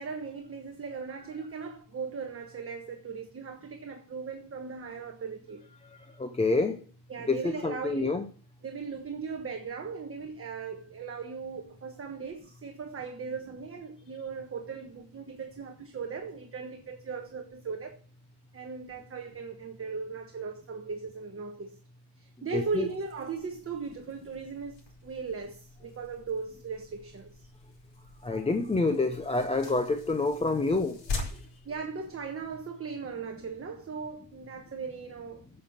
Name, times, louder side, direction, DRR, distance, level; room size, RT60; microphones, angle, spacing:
voice 1, 0.0-5.6 7.1-8.2 8.6-18.0 18.5-21.8 22.2-27.4 31.6-35.5, right 5 dB, 30° right, 1.2 m, -38 dB
voice 2, 6.2-6.8 7.3-8.2 22.5-22.9 28.2-31.0, left 3 dB, 15° left, 0.6 m, -27 dB
sound 1, 22.5-32.7, left 3 dB, 75° left, 5.1 m, -44 dB
8.9 x 7.8 x 7.2 m
cardioid pair, 160°, 45 cm